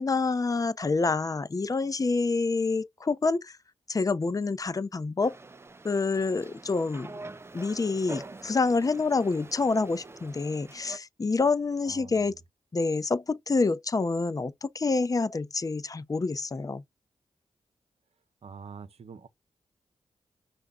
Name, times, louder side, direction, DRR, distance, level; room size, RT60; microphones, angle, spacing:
voice 1, 0.0-3.6 3.9-5.4 5.8-7.1 7.5-12.3 12.7-16.8, left 4 dB, 30° left, 0.5 m, -27 dB
sound 1, 5.2-11.0, right 3 dB, 20° right, 0.4 m, -45 dB
voice 2, 11.8-12.4 18.4-19.3, right 5 dB, 60° right, 0.7 m, -45 dB
5.6 x 2.5 x 3.6 m
cardioid pair, 55°, 12 cm